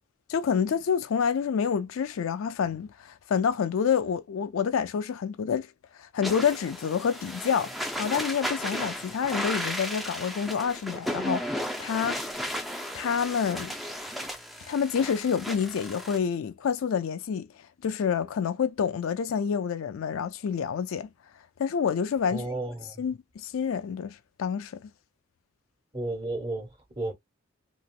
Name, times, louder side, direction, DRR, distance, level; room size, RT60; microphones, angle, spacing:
voice 1, 0.3-5.7 6.0-7.7 8.0-12.2 12.9-13.7 14.7-17.5 17.8-21.1 21.6-22.4 23.0-24.9, left 7 dB, 80° left, 0.4 m, -28 dB
sound 1, 6.2-16.2, equal, ahead, 0.5 m, -34 dB
voice 2, 22.3-23.0 25.9-27.1, right 2 dB, 30° right, 1.3 m, -33 dB
3.0 x 2.9 x 2.4 m
head